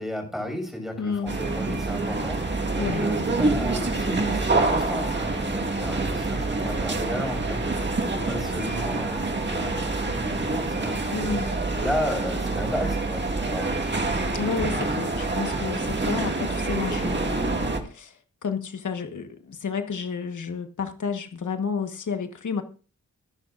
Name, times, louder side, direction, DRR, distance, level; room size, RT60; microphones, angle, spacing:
voice 1, 0.0-11.4 11.7-14.0, equal, ahead, 6.0 m, -34 dB
voice 2, 1.0-1.4 2.8-3.1 11.1-11.5 14.3-22.6, left 5 dB, 80° left, 1.4 m, -31 dB
sound 1, 1.3-17.8, right 3 dB, 35° right, 2.1 m, -26 dB
25.0 x 10.5 x 2.5 m
wide cardioid pair, 125°, 30 cm